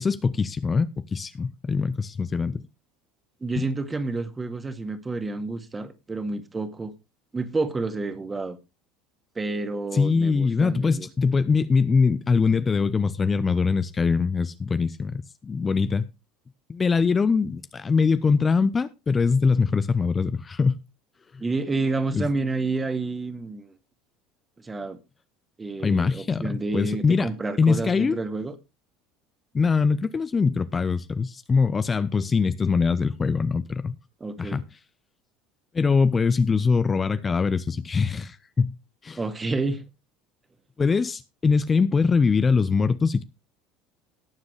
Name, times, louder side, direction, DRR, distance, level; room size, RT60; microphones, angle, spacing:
voice 1, 0.0-2.6 3.6-3.7 9.9-16.1 16.7-20.8 22.1-22.3 25.8-27.3 27.6-28.2 29.5-34.0 34.4-34.6 35.7-38.8 39.0-39.2 40.8-43.2, left 5 dB, 25° left, 0.7 m, -23 dB
voice 2, 3.4-6.9 7.3-8.6 9.4-11.1 21.4-23.7 24.6-25.0 25.6-28.5 34.2-34.6 39.2-39.8, right 3 dB, 20° right, 2.0 m, -29 dB
18.0 x 7.4 x 3.2 m
hypercardioid pair, 75°, 0 cm